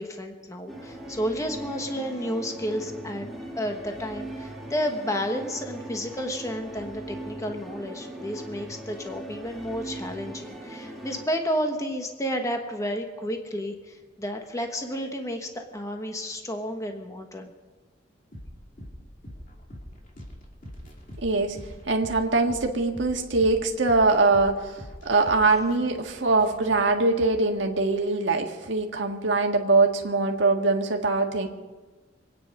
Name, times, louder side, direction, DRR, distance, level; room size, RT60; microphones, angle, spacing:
voice 1, 0.0-3.3 3.6-17.5, equal, 15° left, 4 dB, 1.2 m, -31 dB
sound 1, 0.7-11.3, right 1 dB, ahead, 1.8 m, -39 dB
sound 2, 18.3-27.9, equal, 45° left, 2.8 m, -44 dB
voice 2, 21.2-21.6 21.9-31.5, right 3 dB, 75° right, 2 dB, 1.7 m, -23 dB
25.5 x 9.6 x 5.3 m, 1.3 s
head